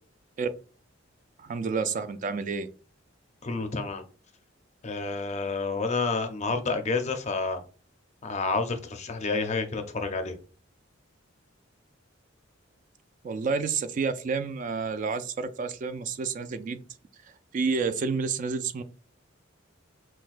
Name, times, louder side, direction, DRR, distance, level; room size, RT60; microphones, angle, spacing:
voice 1, 1.4-2.7 13.2-16.8 17.5-18.8, right 5 dB, 40° right, 0.3 m, -29 dB
voice 2, 3.4-4.0 4.8-7.6 8.2-10.4, left 4 dB, 35° left, 0.5 m, -29 dB
5.8 x 2.1 x 2.4 m
head